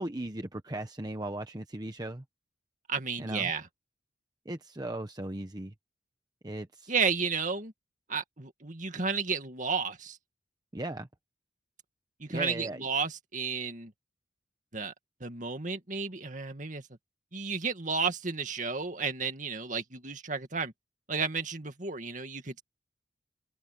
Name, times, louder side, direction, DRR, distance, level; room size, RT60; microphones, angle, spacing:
voice 1, 0.0-2.2 3.2-3.5 4.4-5.7 6.4-6.9 10.7-11.1 12.3-12.8, right 1 dB, 20° right, 1.0 m, -37 dB
voice 2, 2.9-3.7 6.9-7.7 8.1-10.2 12.2-13.9 14.7-14.9 15.2-16.8 17.3-20.7 21.1-22.6, right 5 dB, 45° right, 2.2 m, -32 dB
head